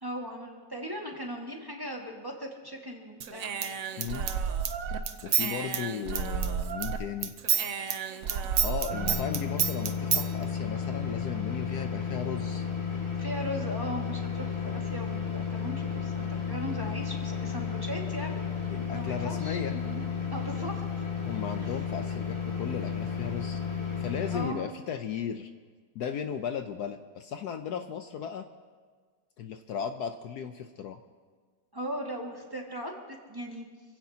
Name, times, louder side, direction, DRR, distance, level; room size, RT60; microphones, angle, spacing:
voice 1, 0.0-3.5 13.2-18.4 18.9-21.0 21.6-21.7 24.3-24.6 31.7-32.9 33.3-33.7, equal, 15° right, -1 dB, 1.8 m, -38 dB
Human voice / Scissors, 3.2-7.0 7.2-10.3, right 7 dB, 60° right, 1.1 m, -30 dB
voice 2, 4.0-4.3 5.2-7.3 8.6-12.7 18.7-19.7 21.2-23.6 24.0-25.5 25.9-28.5 29.4-31.0, left 8 dB, 70° left, 7 dB, 1.1 m, -36 dB
sound 1, 8.9-24.5, left 6 dB, 15° left, 1.8 m, -33 dB
26.5 x 16.5 x 2.8 m, 1.6 s
omnidirectional pair, 1.9 m